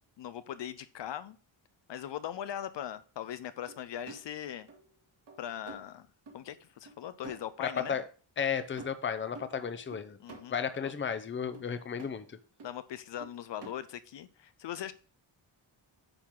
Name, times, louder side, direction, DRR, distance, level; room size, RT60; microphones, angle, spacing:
voice 1, 0.2-1.4 1.9-4.7 5.4-6.1 6.3-8.0 10.2-10.9 12.6-14.9, left 10 dB, 65° left, 13 dB, 0.6 m, -40 dB
sound 1, 3.7-4.3 4.7-5.0 5.3-5.9 6.3-6.4 6.9-7.0 7.2-7.9 8.4-8.5 8.8-9.5 9.9-10.4 10.9-11.1 11.5-12.1 12.6-12.8 13.2-13.7, right 3 dB, 60° right, 2.0 m, -49 dB
voice 2, 7.6-8.0 8.4-10.2 10.5-12.4, left 7 dB, 25° left, 10 dB, 0.6 m, -33 dB
8.9 x 4.7 x 3.7 m, 0.38 s
wide cardioid pair, 150°, 46 cm